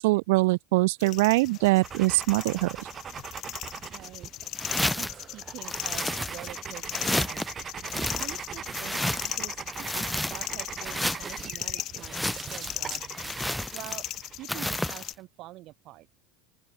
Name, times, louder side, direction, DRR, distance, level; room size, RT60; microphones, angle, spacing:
voice 1, 0.0-2.8, right 23 dB, 70° right, 0.3 m, -23 dB
sound 1, 1.0-15.1, left 15 dB, 45° left, 1.1 m, -38 dB
sound 2, 1.8-14.5, right 8 dB, 25° right, 4.3 m, -41 dB
voice 2, 3.9-4.3 4.7-13.4 13.7-14.1 14.3-16.1, right 17 dB, 45° right, 2.9 m, -46 dB
sound 3, 4.5-5.2 5.7-6.6 6.9-7.5 7.9-9.4 9.7-10.5 10.8-11.5 12.0-12.8 13.1-14.1 14.5-15.1, left 1 dB, 5° left, 0.9 m, -31 dB
open air
supercardioid pair, 135°, 0 cm